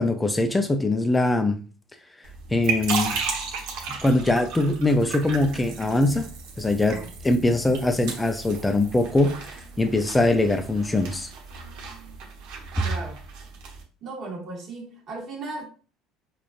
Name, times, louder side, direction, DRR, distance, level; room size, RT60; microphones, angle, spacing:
voice 1, 0.0-1.6 2.5-3.2 4.0-6.3 6.6-9.3 9.8-11.3 12.8-12.9, left 2 dB, 10° left, 0.5 m, -22 dB
sound 1, 2.2-13.8, right 5 dB, 75° right, 1.0 m, -35 dB
voice 2, 12.8-13.2 14.0-15.7, right 3 dB, 45° right, 1.3 m, -36 dB
4.9 x 2.4 x 2.5 m
supercardioid pair, 100°, 0 cm